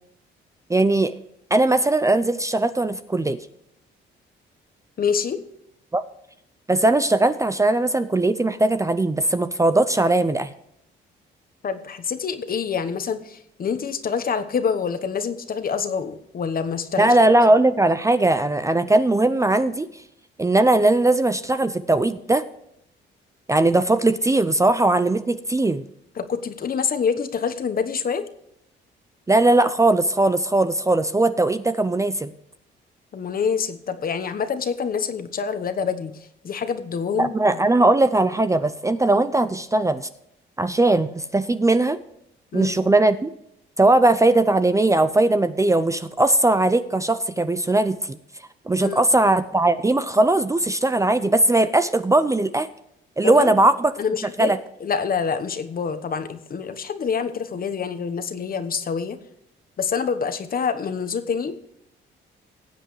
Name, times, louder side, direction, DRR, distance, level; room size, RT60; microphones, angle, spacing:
voice 1, 0.7-1.1 1.5-3.4 5.9-6.0 6.7-10.5 17.0-19.9 20.4-22.4 23.5-25.8 29.3-32.3 37.2-40.1 40.6-42.0 42.5-43.3 43.8-48.2 48.7-52.7 53.2-53.9 54.4-54.6, right 2 dB, 15° right, 11 dB, 0.5 m, -19 dB
voice 2, 5.0-5.4 11.6-17.1 26.2-28.2 33.1-36.1 36.4-37.4 42.5-42.7 48.8-49.0 53.2-53.6 54.0-54.5 54.8-59.2 59.8-61.6, left 6 dB, 45° left, 10 dB, 1.1 m, -26 dB
18.5 x 7.9 x 3.2 m, 0.77 s
cardioid pair, 90°, 20 cm